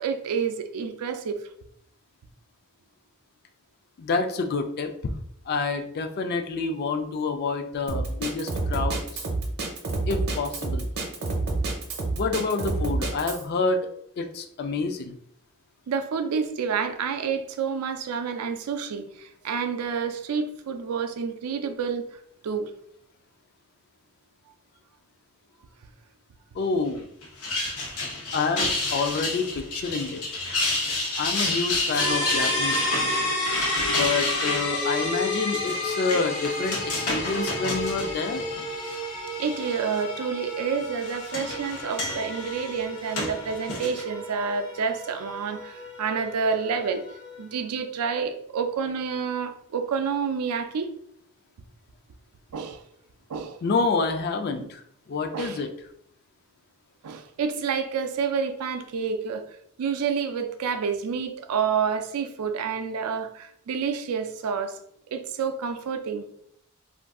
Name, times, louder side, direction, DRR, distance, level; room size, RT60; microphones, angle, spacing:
voice 1, 0.0-1.4 15.9-22.0 22.4-22.7 39.4-47.0 47.4-50.9 52.5-52.8 53.3-53.6 54.6-54.7 55.3-55.6 57.0-59.4 59.8-64.8 65.1-66.2, right 6 dB, 90° right, 0.4 m, -29 dB
voice 2, 4.0-5.1 5.5-9.2 10.1-10.9 12.1-13.9 14.2-15.2 26.5-27.1 28.3-30.2 31.2-33.1 33.9-36.8 37.1-38.4 53.6-54.8 55.1-55.7, left 4 dB, 45° left, 0.3 m, -28 dB
Drum kit, 7.9-13.4, right 3 dB, 45° right, 0.6 m, -28 dB
sound 1, 27.2-39.0 39.4-40.0 40.8-44.0, left 2 dB, 85° left, 0.8 m, -30 dB
sound 2, 32.0-47.5, left 1 dB, 65° left, 1.2 m, -31 dB
2.5 x 2.3 x 3.5 m
head